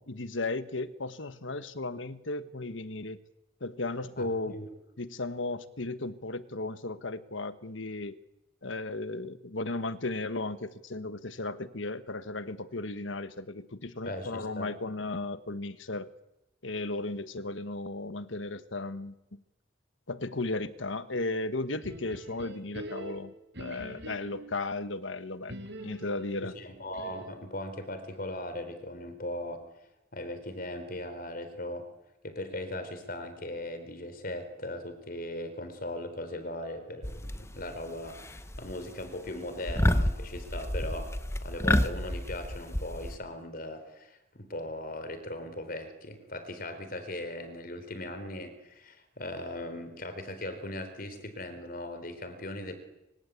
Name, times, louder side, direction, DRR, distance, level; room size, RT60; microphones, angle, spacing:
voice 1, 0.0-3.2 3.6-4.6 5.0-8.2 8.6-16.1 16.6-19.4 20.1-25.6 25.8-26.6, left 2 dB, 80° left, 12 dB, 1.4 m, -35 dB
voice 2, 4.2-4.7 14.0-14.7 26.4-29.7 30.1-31.9 32.2-41.1 41.4-52.7, left 1 dB, 45° left, 9 dB, 4.2 m, -39 dB
sound 1, 21.8-24.6 25.5-27.5, right 1 dB, 60° right, 6.1 m, -44 dB
sound 2, 37.0-37.7 38.1-38.7 39.0-39.3 39.7-43.2, left 1 dB, 15° left, 1.0 m, -29 dB
25.5 x 25.5 x 8.4 m, 0.95 s
head